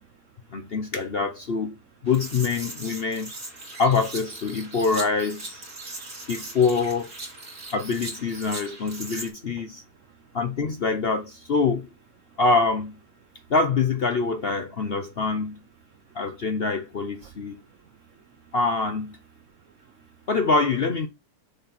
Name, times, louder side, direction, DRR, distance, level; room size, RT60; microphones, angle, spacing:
voice 1, 0.5-1.8 2.0-3.3 3.8-5.7 6.3-7.1 7.7-9.8 10.3-11.9 12.4-13.0 13.5-15.6 16.1-17.6 18.5-19.2 20.3-21.1, left 4 dB, 55° left, 0.7 m, -25 dB
sound 1, 2.1-9.3, right 2 dB, 50° right, 3.3 m, -39 dB
voice 2, 9.7-10.3 12.3-12.4 13.4-13.5 16.1-16.2 17.2-18.5 19.6-20.2, right 9 dB, 70° right, 0.7 m, -56 dB
6.6 x 4.2 x 4.2 m
omnidirectional pair, 1.8 m